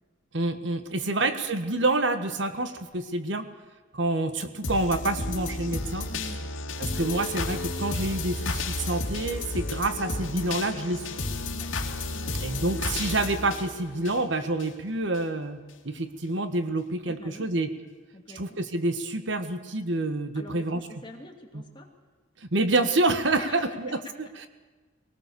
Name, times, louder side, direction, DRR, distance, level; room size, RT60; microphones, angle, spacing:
voice 1, 0.3-3.5 3.9-6.1 6.8-11.1 12.4-15.6 15.8-17.7 18.3-20.8 22.4-24.5, right 2 dB, 65° right, 9 dB, 1.4 m, -27 dB
sound 1, 4.6-14.7 15.1-15.2, left 2 dB, 80° left, 2.5 m, -32 dB
voice 2, 6.1-6.4 6.9-7.0 11.5-11.7 12.1-12.4 17.0-17.5 18.1-18.6 20.3-21.9 23.4-24.1, left 1 dB, 25° left, 1 dB, 2.6 m, -44 dB
20.5 x 19.0 x 6.9 m, 1.3 s
head